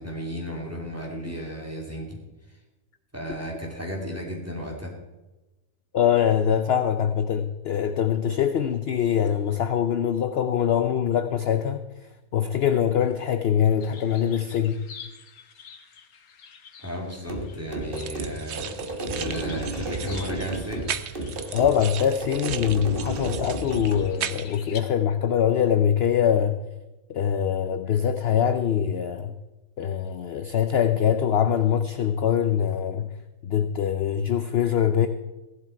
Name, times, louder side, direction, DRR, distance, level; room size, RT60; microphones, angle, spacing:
voice 1, 0.0-2.2 3.1-5.0 16.8-18.8 19.0-20.9, equal, 10° right, -1 dB, 2.7 m, -34 dB
voice 2, 5.9-11.8 12.3-14.8 21.5-26.6 27.1-29.3 29.8-33.1 33.4-35.1, left 9 dB, 55° left, 9 dB, 0.8 m, -23 dB
sound 1, 13.8-24.8, left 6 dB, 80° left, 1.6 m, -48 dB
sound 2, 17.3-24.1, right 1 dB, 40° right, 1.7 m, -32 dB
sound 3, 17.9-24.6, right 9 dB, 60° right, 0.9 m, -37 dB
16.0 x 11.5 x 4.6 m, 1.1 s
omnidirectional pair, 1.5 m